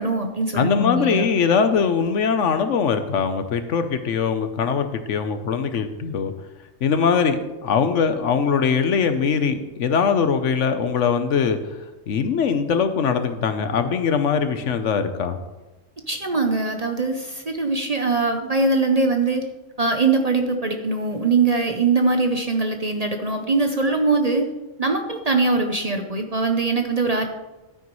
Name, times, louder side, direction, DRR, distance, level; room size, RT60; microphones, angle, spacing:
voice 1, 0.0-1.3 16.1-19.5 19.8-24.5 24.8-27.3, right 3 dB, 35° right, 4 dB, 0.7 m, -22 dB
voice 2, 0.5-6.3 6.8-11.6 12.1-15.4, left 6 dB, 70° left, 9 dB, 1.1 m, -21 dB
12.5 x 9.3 x 3.1 m, 1.1 s
omnidirectional pair, 1.3 m